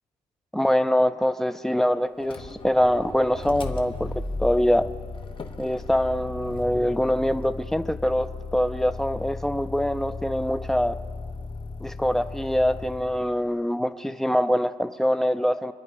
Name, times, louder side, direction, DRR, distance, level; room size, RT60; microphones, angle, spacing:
voice 1, 0.5-4.1 4.4-4.8 5.6-11.0 11.8-15.7, equal, 5° left, 10 dB, 0.4 m, -24 dB
Motor vehicle (road), 2.2-13.4, left 3 dB, 40° left, 1.0 m, -36 dB
27.0 x 10.5 x 4.8 m, 2.2 s
cardioid pair, 140°, 14 cm